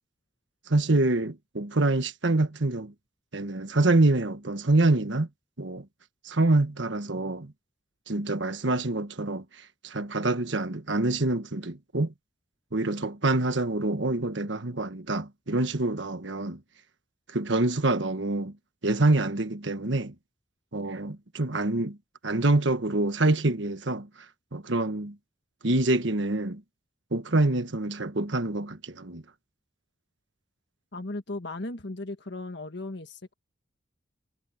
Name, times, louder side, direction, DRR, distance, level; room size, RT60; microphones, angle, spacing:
voice 1, 0.7-2.9 3.3-5.3 5.6-5.8 6.2-7.5 8.1-9.4 9.8-12.1 12.7-16.6 17.3-18.5 18.8-20.1 20.7-22.0 22.2-24.1 24.5-25.1 25.6-26.6 27.1-29.2, right 2 dB, 65° right, 1.5 m, -26 dB
voice 2, 30.9-33.3, left 2 dB, 60° left, 1.6 m, -36 dB
head